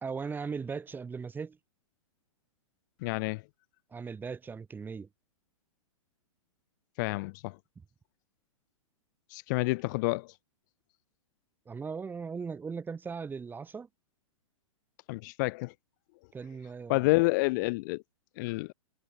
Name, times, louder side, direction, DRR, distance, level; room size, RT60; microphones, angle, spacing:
voice 1, 0.0-1.6 3.9-5.1 7.8-7.9 11.7-13.9 16.3-17.1, right 5 dB, 10° right, 2.0 m, -38 dB
voice 2, 3.0-3.4 7.0-7.6 9.3-10.3 15.1-15.7 16.9-18.0 18.4-18.7, left 25 dB, 35° left, 0.7 m, -29 dB
figure-of-eight pair, 105°, 17 cm